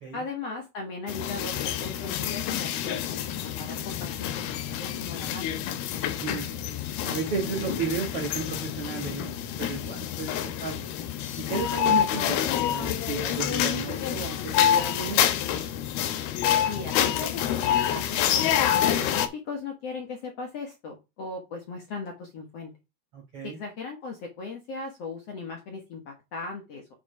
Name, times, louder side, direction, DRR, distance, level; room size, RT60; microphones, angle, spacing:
voice 1, 0.1-5.4 16.7-22.7 23.4-26.9, left 3 dB, 55° left, 2 dB, 1.9 m, -38 dB
sound 1, 1.1-19.3, left 10 dB, 80° left, 2.7 m, -27 dB
voice 2, 7.0-10.8 11.4-15.2 23.1-23.6, right 6 dB, 60° right, 1 dB, 1.6 m, -33 dB
7.0 x 4.9 x 4.9 m, 0.24 s
omnidirectional pair, 4.6 m